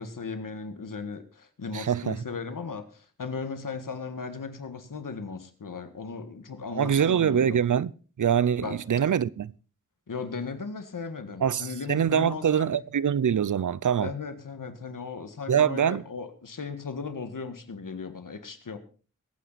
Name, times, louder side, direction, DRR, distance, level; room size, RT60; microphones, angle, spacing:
voice 1, 0.0-7.6 8.6-8.8 10.1-12.7 14.0-18.8, left 4 dB, 85° left, 1.8 m, -37 dB
voice 2, 1.7-2.2 6.7-7.9 8.2-9.5 11.4-14.1 15.5-16.0, right 8 dB, 70° right, 0.6 m, -24 dB
21.5 x 9.0 x 4.1 m
wide cardioid pair, 80°, 32 cm